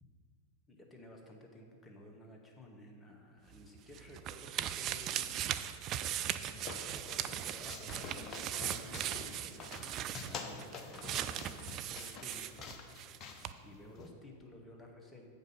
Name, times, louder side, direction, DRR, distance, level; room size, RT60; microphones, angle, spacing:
voice 1, 0.7-12.6 13.6-15.3, left 1 dB, 10° left, 1 dB, 1.2 m, -55 dB
sound 1, 3.5-13.2 13.4-13.5, right 11 dB, 35° right, 0.3 m, -39 dB
sound 2, 5.9-14.1, left 4 dB, 30° left, 0.8 m, -48 dB
7.8 x 5.3 x 5.5 m, 2.2 s
figure-of-eight pair, 90°, 0 cm